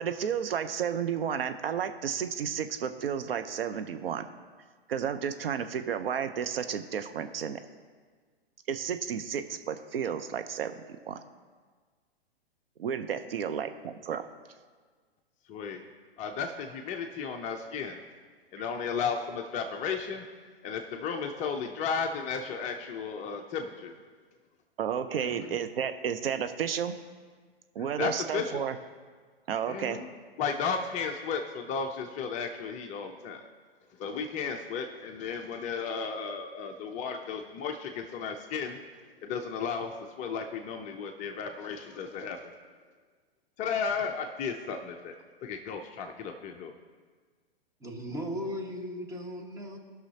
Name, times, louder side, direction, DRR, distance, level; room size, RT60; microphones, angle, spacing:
voice 1, 0.0-4.3 4.9-7.6 8.7-10.7 11.1-11.2 12.8-14.2 18.6-18.7 24.8-27.0 27.7-28.8 29.5-30.0, right 8 dB, 70° right, 9 dB, 0.7 m, -32 dB
voice 2, 15.5-15.8 16.2-18.0 18.5-20.2 20.6-23.9 25.1-25.6 27.8-28.6 29.7-30.1 30.4-33.5 34.0-38.8 39.2-42.5 43.6-45.1 45.4-46.7, left 6 dB, 25° left, 4 dB, 0.5 m, -34 dB
voice 3, 47.8-49.8, equal, 10° right, 0 dB, 1.4 m, -37 dB
18.5 x 6.3 x 2.8 m, 1.5 s
hypercardioid pair, 115°, 31 cm